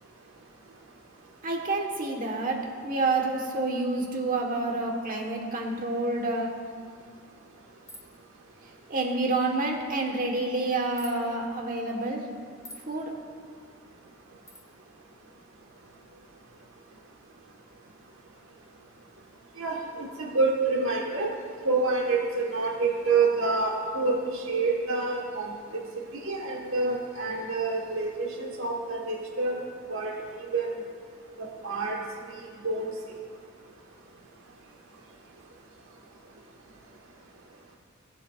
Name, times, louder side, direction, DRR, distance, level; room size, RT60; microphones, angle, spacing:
voice 1, 1.4-6.5 8.9-12.2 12.9-13.1, right 2 dB, 40° right, 1 dB, 1.3 m, -28 dB
sound 1, 7.9-8.2 11.0-11.2 12.6-12.9 14.5-14.6, equal, 15° left, 0.9 m, -45 dB
voice 2, 19.6-21.3 21.6-25.5 26.2-29.6 29.9-30.7 31.4-32.0 32.6-32.9, right 3 dB, 65° right, -1 dB, 1.4 m, -27 dB
18.0 x 7.3 x 2.4 m, 2.1 s
head